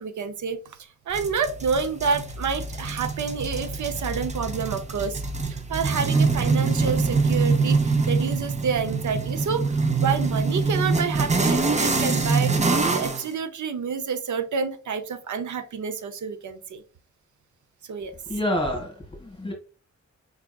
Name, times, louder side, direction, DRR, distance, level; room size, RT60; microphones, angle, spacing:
voice 1, 0.0-5.2 5.7-16.8 17.9-18.1, right 5 dB, 85° right, 9 dB, 0.6 m, -29 dB
sound 1, 1.1-13.3, right 4 dB, 25° right, 0.5 m, -24 dB
voice 2, 18.3-19.5, left 1 dB, 15° left, 1 dB, 1.6 m, -28 dB
4.8 x 3.5 x 2.3 m, 0.36 s
wide cardioid pair, 140°, 29 cm